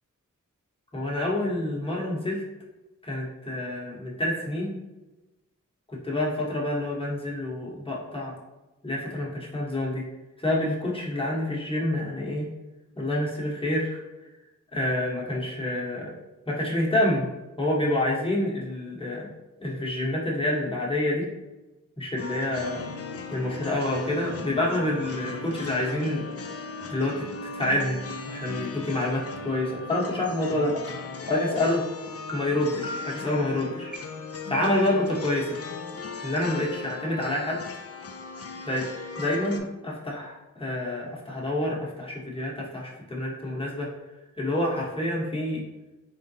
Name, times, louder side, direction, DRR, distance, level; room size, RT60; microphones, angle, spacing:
voice 1, 0.9-2.4 3.0-4.7 5.9-8.3 8.8-10.0 10.4-12.5 12.9-14.0 14.7-16.1 16.5-17.3 17.6-19.3 19.6-21.3 22.0-22.9 23.3-26.2 26.9-27.2 27.5-28.0 28.3-30.7 31.3-31.8 32.3-33.9 34.5-35.6 36.2-37.6 38.6-38.8 39.2-43.9 44.4-45.6, left 1 dB, 15° left, -4 dB, 1.1 m, -27 dB
sound 1, 22.2-39.6, left 4 dB, 50° left, 0.5 m, -38 dB
sound 2, 30.7-30.8 31.3-31.7 32.3-32.4 32.8-33.3 33.9-34.0 34.5-35.1, left 1 dB, 30° right, 0.9 m, -37 dB
3.8 x 3.5 x 2.7 m, 1.1 s
wide cardioid pair, 60°, 32 cm